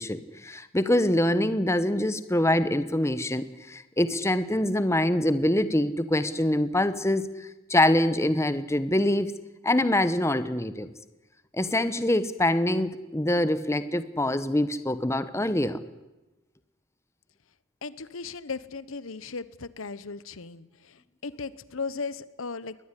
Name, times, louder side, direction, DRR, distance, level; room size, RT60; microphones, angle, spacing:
voice 1, 0.0-9.3 9.6-10.9 11.5-15.8, left 1 dB, 15° left, 13 dB, 1.0 m, -25 dB
voice 2, 17.8-22.8, left 4 dB, 75° left, 17 dB, 1.0 m, -37 dB
22.5 x 18.5 x 9.9 m, 1.0 s
head